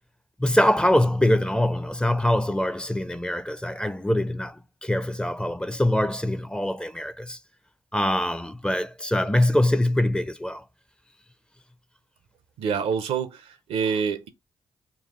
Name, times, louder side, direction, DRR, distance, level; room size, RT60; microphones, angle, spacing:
voice 1, 0.4-7.4 7.9-10.6, left 1 dB, 10° left, 0.4 m, -23 dB
voice 2, 12.6-14.3, right 6 dB, 85° right, 0.6 m, -27 dB
4.1 x 2.4 x 3.6 m
supercardioid pair, 55°, 10 cm